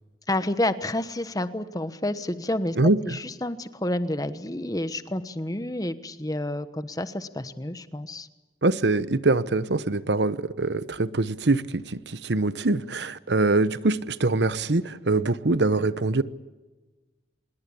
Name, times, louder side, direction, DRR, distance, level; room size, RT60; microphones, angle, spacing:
voice 1, 0.3-2.8 3.0-8.3, left 1 dB, 20° left, 12 dB, 1.2 m, -29 dB
voice 2, 2.8-3.2 8.6-16.2, right 2 dB, 80° right, 15 dB, 1.0 m, -24 dB
25.5 x 21.0 x 8.5 m, 1.2 s
head